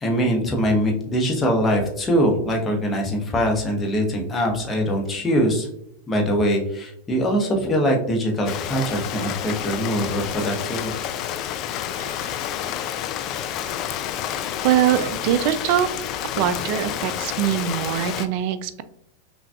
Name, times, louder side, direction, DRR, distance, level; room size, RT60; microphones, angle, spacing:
voice 1, 0.0-5.7 6.1-10.9, equal, 15° left, 0 dB, 0.9 m, -22 dB
Rain, 8.4-18.3, left 10 dB, 35° left, 0.3 m, -29 dB
sound 1, 11.8-15.6, left 2 dB, 70° left, 1.1 m, -46 dB
voice 2, 14.6-15.9 16.4-18.8, right 10 dB, 45° right, 12 dB, 0.3 m, -22 dB
5.7 x 2.3 x 2.3 m, 0.73 s
figure-of-eight pair, 90°, 0 cm